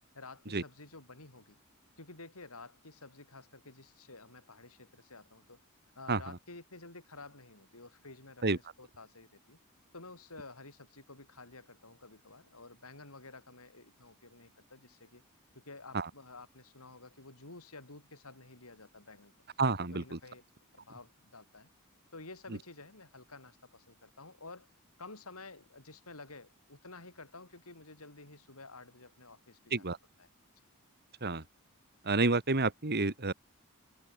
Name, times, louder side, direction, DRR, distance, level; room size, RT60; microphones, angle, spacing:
voice 1, 0.1-1.6 2.0-5.6 5.9-9.6 9.9-15.2 15.6-19.3 19.8-20.4 20.7-21.7 22.1-24.7 25.0-29.9 30.2-30.3, left 3 dB, 80° left, 6.5 m, -51 dB
voice 2, 19.6-20.2 29.7-30.0 31.2-31.4 32.1-33.3, right 3 dB, 50° right, 2.1 m, -29 dB
head